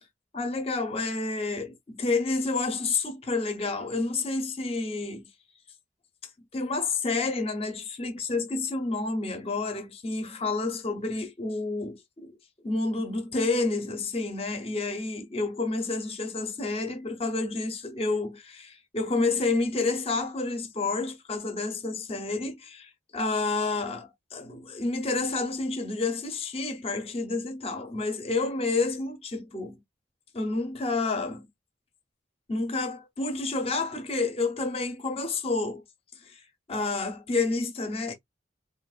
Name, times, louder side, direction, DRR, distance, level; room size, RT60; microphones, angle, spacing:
voice 1, 0.3-5.3 6.5-12.4 12.6-29.8 30.3-31.5 32.5-35.8 36.2-36.4 36.7-38.1, left 3 dB, 30° left, 0.6 m, -29 dB
3.3 x 2.3 x 2.3 m
head